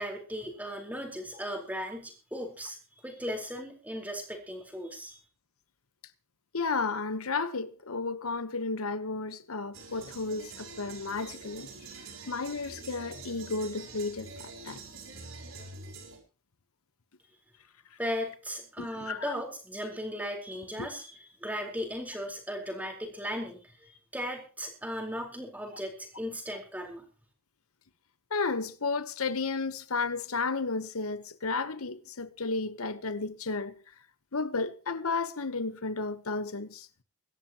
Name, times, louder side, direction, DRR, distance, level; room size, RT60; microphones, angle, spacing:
voice 1, 0.0-2.8 3.0-5.2 18.0-27.0, equal, 5° right, 4.3 m, -37 dB
voice 2, 6.5-11.7 12.3-14.8 18.8-19.3 20.8-20.9 28.3-33.7 34.3-36.9, left 4 dB, 90° left, 1.2 m, -33 dB
sound 1, 9.7-16.2, right 4 dB, 70° right, 6.5 m, -46 dB
24.0 x 13.0 x 3.0 m
head